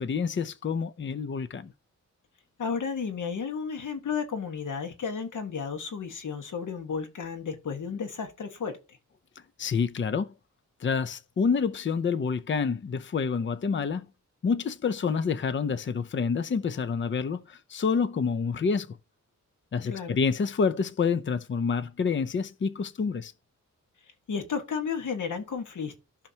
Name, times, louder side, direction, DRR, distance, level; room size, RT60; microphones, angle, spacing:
voice 1, 0.0-1.7 9.6-10.3 10.8-14.0 14.4-18.9 19.7-23.3, left 5 dB, 40° left, 0.6 m, -28 dB
voice 2, 2.6-8.7 19.9-20.2 24.3-25.9, left 6 dB, 75° left, 1.5 m, -33 dB
14.0 x 5.9 x 2.8 m
wide cardioid pair, 175°, 31 cm